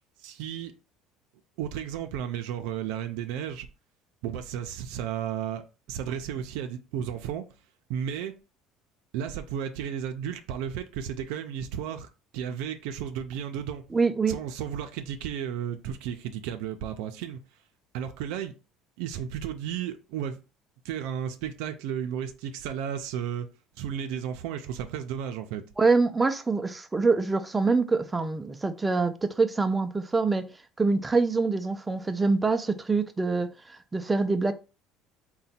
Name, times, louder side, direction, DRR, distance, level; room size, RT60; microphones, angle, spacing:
voice 1, 0.2-0.7 1.6-3.7 4.2-5.6 5.9-7.4 7.9-8.3 9.1-12.1 12.3-13.8 14.3-17.4 17.9-18.5 19.0-20.4 20.8-23.5 23.8-25.6, right 9 dB, 85° right, 0.4 m, -33 dB
voice 2, 13.9-14.4 25.8-30.5 30.8-34.5, right 4 dB, 15° right, 0.3 m, -25 dB
3.9 x 2.2 x 4.1 m
cardioid pair, 135°, 0 cm